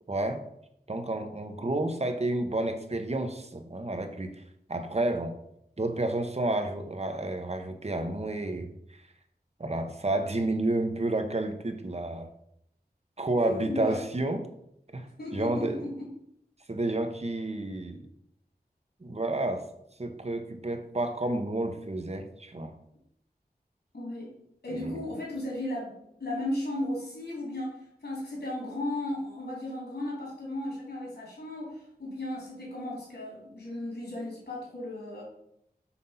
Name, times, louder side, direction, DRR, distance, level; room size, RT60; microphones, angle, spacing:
voice 1, 0.1-0.4 0.9-4.4 4.7-5.3 5.8-8.7 9.6-12.3 13.2-14.5 14.9-15.8 16.7-18.1 19.0-19.6 20.0-22.7 24.7-25.0, right 2 dB, 40° right, 7 dB, 0.9 m, -30 dB
voice 2, 13.4-14.0 15.2-16.1 23.9-24.4 24.6-25.9 26.2-35.2, left 1 dB, 80° left, -4 dB, 3.0 m, -35 dB
5.9 x 4.2 x 5.6 m, 0.75 s
wide cardioid pair, 60°, 16 cm